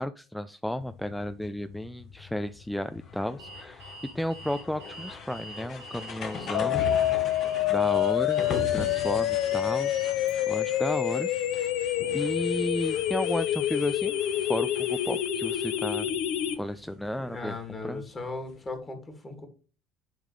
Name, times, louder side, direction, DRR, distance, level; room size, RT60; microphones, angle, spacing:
voice 1, 0.0-7.4 7.7-10.1 10.5-11.7 12.1-16.1 16.6-18.0, left 1 dB, 5° left, 11 dB, 0.4 m, -33 dB
sound 1, 0.8-18.7, left 4 dB, 50° left, 1.2 m, -42 dB
Alarm, 3.4-10.3, right 2 dB, 90° right, 3.0 m, -46 dB
sound 2, 6.5-16.5, left 12 dB, 65° left, 0.7 m, -27 dB
voice 2, 17.2-19.5, left 3 dB, 25° left, 5 dB, 2.3 m, -38 dB
10.0 x 3.7 x 3.2 m, 0.35 s
hypercardioid pair, 65°, 0 cm